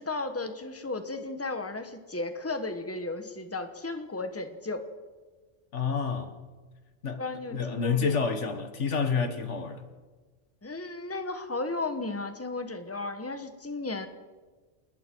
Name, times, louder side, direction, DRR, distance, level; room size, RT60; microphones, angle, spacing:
voice 1, 0.0-4.9 7.2-8.2 10.6-14.1, left 3 dB, 10° left, 1.4 m, -34 dB
voice 2, 5.7-6.3 7.0-7.2 7.5-9.8, left 5 dB, 75° left, 1.8 m, -28 dB
27.5 x 20.5 x 4.7 m
omnidirectional pair, 1.2 m